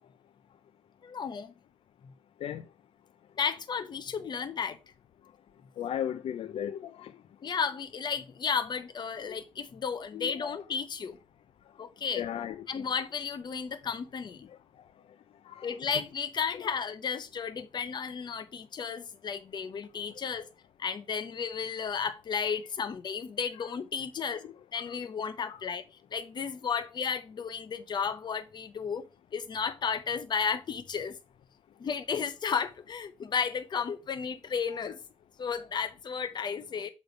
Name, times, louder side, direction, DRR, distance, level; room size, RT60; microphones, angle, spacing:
voice 1, 1.0-1.5 3.4-4.8 7.4-11.2 11.8-12.2 12.7-14.5 15.6-20.5 20.8-24.4 24.7-25.8 26.1-29.0 29.3-31.1 31.8-35.0 35.4-36.9, left 6 dB, 45° left, 0.7 m, -33 dB
voice 2, 5.8-7.1 10.1-10.6 12.2-12.8 15.5-15.7 24.9-25.0 25.5-25.6, left 10 dB, 70° left, 0.4 m, -36 dB
6.6 x 3.2 x 5.2 m
wide cardioid pair, 140°, 10 cm